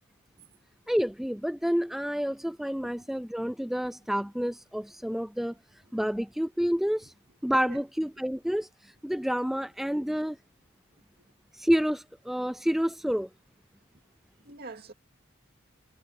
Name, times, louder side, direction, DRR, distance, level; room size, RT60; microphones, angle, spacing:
voice 1, 0.9-5.5 5.9-7.1 7.4-10.4 11.5-13.3, equal, ahead, 0.3 m, -29 dB
voice 2, 2.8-3.2 5.8-6.0 7.6-7.8 10.9-11.0 14.0-14.9, right 3 dB, 50° right, 2.5 m, -47 dB
head